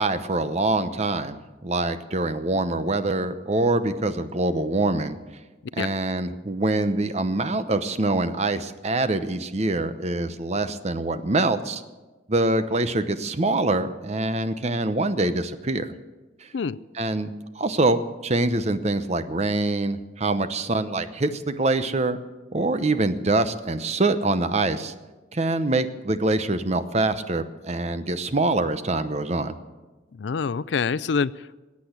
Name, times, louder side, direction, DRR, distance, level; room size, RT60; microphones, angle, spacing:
voice 1, 0.0-5.2 5.8-11.8 12.3-15.9 16.4-16.5 16.9-22.2 22.5-24.9 25.3-29.6, right 2 dB, 35° right, 11 dB, 0.8 m, -24 dB
voice 2, 30.1-31.5, left 5 dB, 75° left, 19 dB, 0.4 m, -26 dB
20.5 x 8.6 x 8.1 m, 1.2 s
head